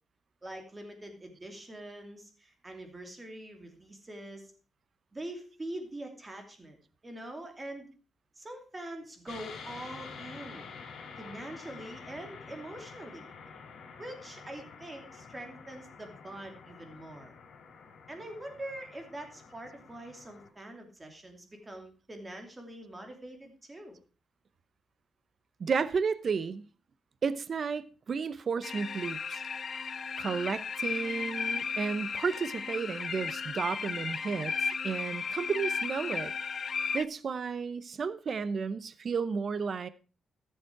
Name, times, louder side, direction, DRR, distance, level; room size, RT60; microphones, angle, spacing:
voice 1, 0.4-4.5 5.1-6.8 7.0-7.9 8.4-10.7 11.2-13.3 14.0-17.3 18.1-24.0, right 1 dB, 20° right, 2.8 m, -44 dB
sound 1, 9.3-20.5, left 5 dB, 70° left, 3.1 m, -48 dB
voice 2, 25.6-26.7 27.2-29.4 30.2-34.5 34.8-36.3 36.9-39.9, right 5 dB, 45° right, 0.7 m, -32 dB
sound 2, 28.6-37.1, left 5 dB, 40° left, 0.5 m, -35 dB
13.5 x 7.4 x 4.6 m
cardioid pair, 125°, 0 cm